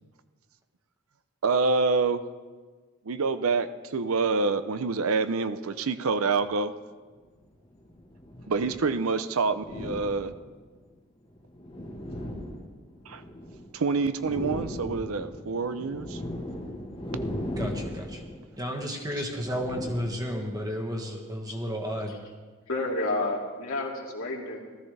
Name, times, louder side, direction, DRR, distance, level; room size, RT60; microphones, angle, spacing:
voice 1, 1.4-2.2 3.1-6.7 8.5-10.3 13.1-13.2 13.7-16.2, right 4 dB, 80° right, 11 dB, 0.6 m, -27 dB
sound 1, 6.4-6.5 7.4-8.9 9.5-10.7 11.3-13.7 14.0-20.6, left 1 dB, 25° left, 1.4 m, -38 dB
voice 2, 17.6-18.2 18.6-22.1, equal, 15° right, 1 dB, 1.6 m, -32 dB
voice 3, 22.7-24.7, left 2 dB, 70° left, -2 dB, 2.4 m, -30 dB
18.5 x 13.5 x 3.3 m, 1.4 s
head